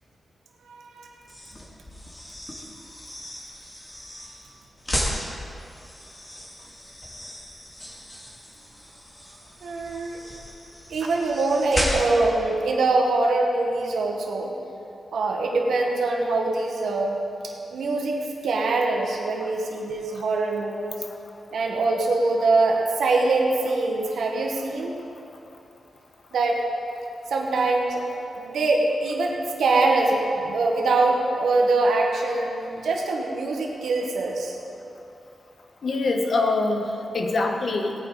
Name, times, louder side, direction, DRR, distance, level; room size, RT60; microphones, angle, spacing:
voice 1, 0.7-1.1 9.6-10.2 10.9-14.5 15.1-17.2 17.4-21.0 21.5-24.9 26.3-26.6 27.3-28.1 28.4-34.6, right 3 dB, 85° right, 0 dB, 1.6 m, -23 dB
sound 1, 1.2-12.4, left 1 dB, 25° left, 2.6 m, -35 dB
voice 2, 35.8-37.9, left 3 dB, 60° left, 3 dB, 1.3 m, -24 dB
17.5 x 9.3 x 4.1 m, 2.7 s
cardioid pair, 85°, 0 cm